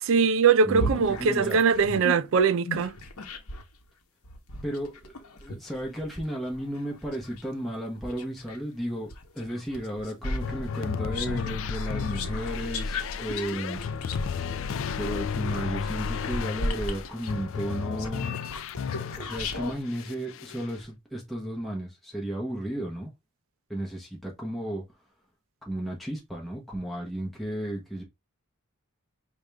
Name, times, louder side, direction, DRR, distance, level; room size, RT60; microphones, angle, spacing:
voice 1, 0.0-2.9, right 5 dB, 60° right, 0.4 m, -22 dB
voice 2, 0.6-1.6 4.6-5.1 5.4-13.8 15.0-18.4 18.9-23.1 23.7-24.8 25.7-28.0, right 1 dB, ahead, 0.9 m, -34 dB
sound 1, 0.7-3.7 4.2-8.6 9.1-19.8, left 1 dB, 85° left, 0.9 m, -36 dB
sound 2, 10.4-19.6 19.9-20.7, left 6 dB, 60° left, 0.3 m, -33 dB
5.0 x 2.5 x 3.4 m
head